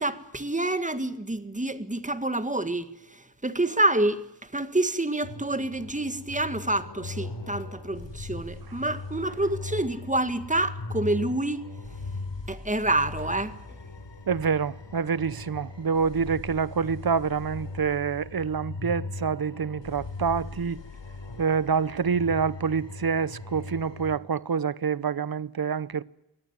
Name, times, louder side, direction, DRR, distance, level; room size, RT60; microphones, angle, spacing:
voice 1, 0.0-11.7 12.5-13.6, right 1 dB, 15° right, 1.7 m, -28 dB
sound 1, 5.2-24.2, left 3 dB, 80° left, 3.7 m, -39 dB
voice 2, 14.3-20.8 21.4-26.0, right 6 dB, 55° right, 0.8 m, -27 dB
22.5 x 17.5 x 9.4 m
wide cardioid pair, 85°, 43 cm